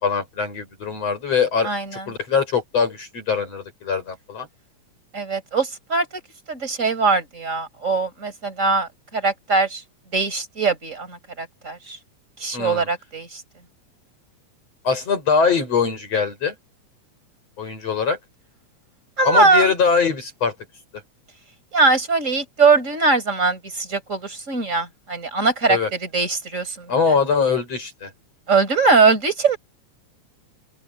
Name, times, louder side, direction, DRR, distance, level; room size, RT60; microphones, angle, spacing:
voice 1, 0.0-4.5 12.5-12.9 14.8-16.5 17.6-18.2 19.2-20.5 20.9-21.0 25.7-25.9 26.9-28.1, left 5 dB, 55° left, 6.6 m, -22 dB
voice 2, 1.6-2.0 5.1-6.1 6.5-9.8 10.1-12.0 12.4-13.4 19.2-19.7 21.7-25.8 26.1-27.1 28.5-29.6, right 4 dB, 25° right, 5.3 m, -21 dB
open air
omnidirectional pair, 3.4 m